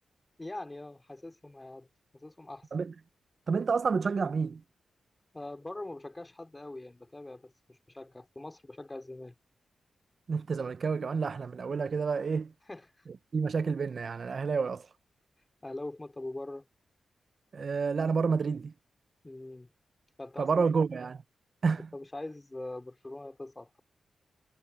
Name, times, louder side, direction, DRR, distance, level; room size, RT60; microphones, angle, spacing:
voice 1, 0.4-1.9 2.1-2.7 5.3-9.3 12.7-13.0 15.6-16.7 19.2-19.7 20.2-20.5 21.9-23.8, left 2 dB, 15° left, 2.7 m, -42 dB
voice 2, 3.5-4.6 10.3-12.5 13.3-14.9 17.5-18.7 20.4-21.2 21.6-21.9, right 5 dB, 45° right, 0.5 m, -29 dB
wide cardioid pair, 145°, 0 cm